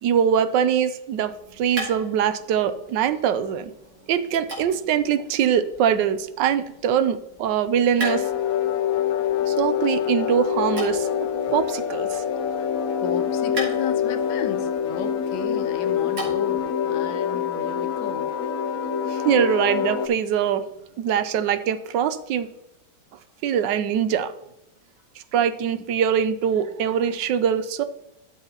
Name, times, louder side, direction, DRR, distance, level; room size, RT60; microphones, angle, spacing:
voice 1, 0.0-3.7 4.1-8.3 9.5-11.1 11.5-12.2 19.1-20.6 21.0-22.5 23.4-24.3 25.3-27.8, right 8 dB, 90° right, 12 dB, 1.3 m, -23 dB
sound 1, 1.1-16.7, right 2 dB, 70° right, 3.3 m, -40 dB
sound 2, 8.0-20.1, left 8 dB, 65° left, 0.9 m, -25 dB
voice 2, 13.0-18.3, left 7 dB, 90° left, 9 dB, 1.4 m, -34 dB
12.5 x 6.8 x 2.9 m, 0.84 s
omnidirectional pair, 1.9 m